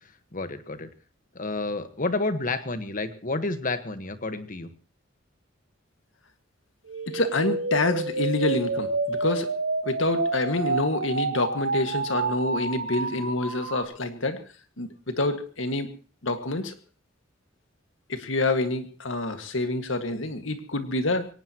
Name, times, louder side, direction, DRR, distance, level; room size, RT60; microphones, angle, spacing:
voice 1, 0.3-0.9 1.3-4.7, left 3 dB, 45° left, 10 dB, 1.4 m, -30 dB
sound 1, 6.9-13.8, right 3 dB, 70° right, 2.7 m, -29 dB
voice 2, 7.1-9.5 9.8-14.4 14.8-15.9 16.2-16.7 18.1-21.3, left 2 dB, 85° left, 8 dB, 1.9 m, -27 dB
23.0 x 18.0 x 3.0 m, 0.39 s
head